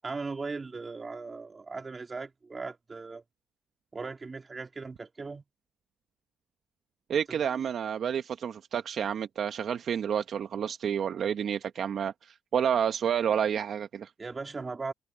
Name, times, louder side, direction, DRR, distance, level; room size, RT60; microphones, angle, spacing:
voice 1, 0.0-3.2 3.9-5.4 7.3-7.7 14.2-14.9, right 4 dB, 30° right, 3.0 m, -38 dB
voice 2, 7.1-14.1, right 8 dB, 60° right, 1.0 m, -29 dB
cardioid pair, 90°, 0 cm